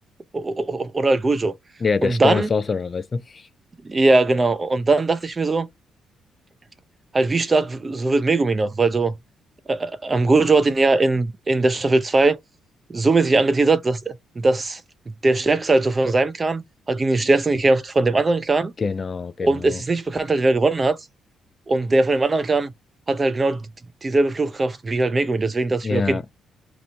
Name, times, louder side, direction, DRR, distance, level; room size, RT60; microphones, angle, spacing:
voice 1, 0.3-1.5 2.0-2.5 3.8-5.7 7.1-9.1 9.7-12.4 12.9-14.8 15.2-16.6 16.9-18.7 19.4-21.0 21.7-22.7 23.1-23.7 24.0-26.3, right 3 dB, 30° right, 0.6 m, -20 dB
voice 2, 1.8-3.5 18.8-19.8 25.8-26.2, left 5 dB, 35° left, 0.4 m, -24 dB
2.9 x 2.6 x 4.2 m
cardioid pair, 90°, 0 cm